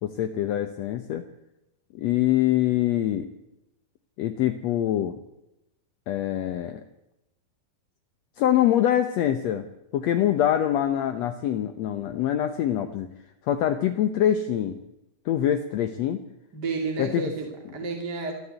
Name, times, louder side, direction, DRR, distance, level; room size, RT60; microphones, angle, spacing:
voice 1, 0.0-1.2 1.9-3.3 4.2-5.2 6.1-6.8 8.4-9.7 9.9-13.1 13.5-14.8 15.2-16.2 17.0-17.3, left 11 dB, 75° left, 8 dB, 1.6 m, -24 dB
voice 2, 16.5-18.3, right 4 dB, 30° right, 2 dB, 2.7 m, -31 dB
26.5 x 12.5 x 8.2 m, 0.89 s
omnidirectional pair, 4.2 m